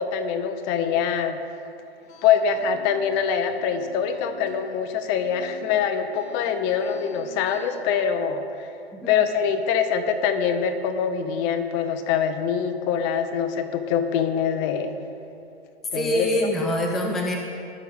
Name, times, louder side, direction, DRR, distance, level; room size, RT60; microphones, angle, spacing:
voice 1, 0.0-1.4 2.2-8.7 9.1-14.9 15.9-16.3, left 7 dB, 35° left, 8 dB, 0.8 m, -24 dB
sound 1, 2.0-7.8, left 2 dB, 70° left, 1.9 m, -46 dB
voice 2, 8.9-9.2 15.9-17.3, equal, ahead, -1 dB, 0.5 m, -25 dB
18.5 x 6.3 x 3.6 m, 2.6 s
hypercardioid pair, 125°, 33 cm